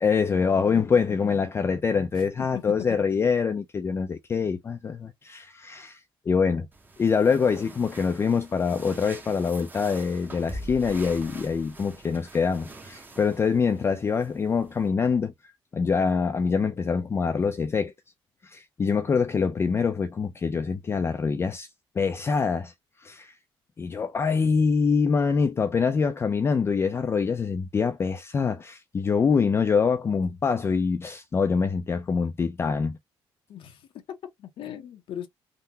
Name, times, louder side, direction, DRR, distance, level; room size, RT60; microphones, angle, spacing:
voice 1, 0.0-6.0 6.3-6.7 7.0-15.3 15.7-17.9 18.4-21.7 22.0-22.7 23.0-23.3 23.8-33.0, left 5 dB, 25° left, 0.3 m, -25 dB
voice 2, 2.2-3.0 33.5-35.3, left 10 dB, 70° left, 0.6 m, -39 dB
sound 1, 6.7-14.9, right 2 dB, 20° right, 0.7 m, -44 dB
3.6 x 2.0 x 2.7 m
cardioid pair, 125°, 9 cm